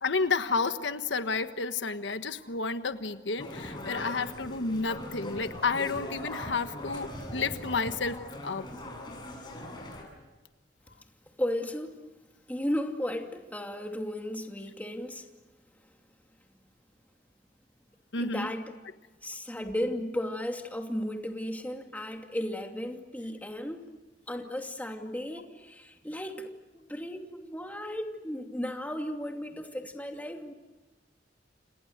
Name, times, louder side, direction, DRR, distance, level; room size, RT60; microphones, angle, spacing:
voice 1, 0.0-8.2 8.4-8.6 18.1-18.5, left 4 dB, 90° left, 1.4 m, -31 dB
sound 1, 3.4-10.0, left 1 dB, 25° left, 8.0 m, -40 dB
voice 2, 11.4-12.0 12.5-15.3 18.2-18.7 19.2-23.9 24.3-30.5, left 1 dB, 10° left, 2.6 m, -35 dB
30.0 x 28.5 x 6.7 m
head